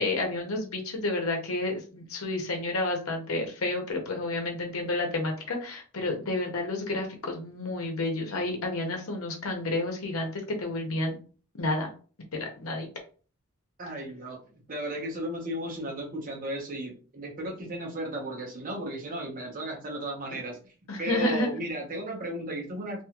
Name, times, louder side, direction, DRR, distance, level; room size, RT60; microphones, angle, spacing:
voice 1, 0.0-11.1 11.6-11.9 12.3-12.9 20.9-21.6, left 2 dB, 90° left, 2 dB, 0.8 m, -30 dB
voice 2, 13.8-14.4 14.7-20.6 21.0-23.0, right 1 dB, 40° right, 0 dB, 0.9 m, -35 dB
2.6 x 2.4 x 2.9 m, 0.38 s
head